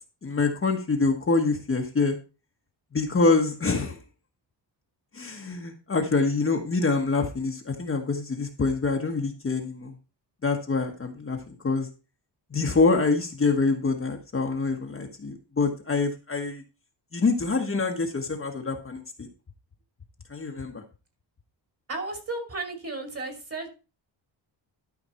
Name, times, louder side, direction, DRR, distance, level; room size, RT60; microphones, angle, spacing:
voice 1, 0.2-2.2 2.9-4.0 5.1-10.0 10.4-11.9 12.5-16.6 17.1-19.3 20.3-20.8, left 3 dB, 30° left, 2 dB, 1.4 m, -25 dB
voice 2, 21.9-23.7, right 3 dB, 30° right, 4 dB, 2.8 m, -34 dB
12.5 x 5.2 x 4.4 m, 0.32 s
wide cardioid pair, 140°, 44 cm